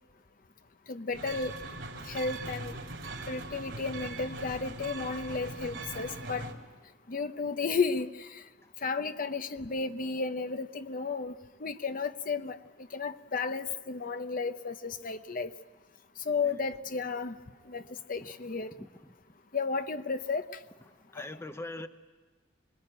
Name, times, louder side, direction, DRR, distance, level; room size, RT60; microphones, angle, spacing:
voice 1, 0.9-1.5 2.1-2.7 3.3-6.5 7.1-8.1 8.8-11.3 11.6-12.6 12.9-15.5 16.3-17.3 17.7-17.8 18.1-18.7 19.5-20.4, left 4 dB, 50° left, 9 dB, 0.9 m, -33 dB
sound 1, 1.1-6.5, right 2 dB, 80° right, 3.3 m, -41 dB
voice 2, 21.1-21.9, left 2 dB, 15° left, 9 dB, 0.7 m, -41 dB
25.5 x 21.0 x 8.9 m, 1.3 s
head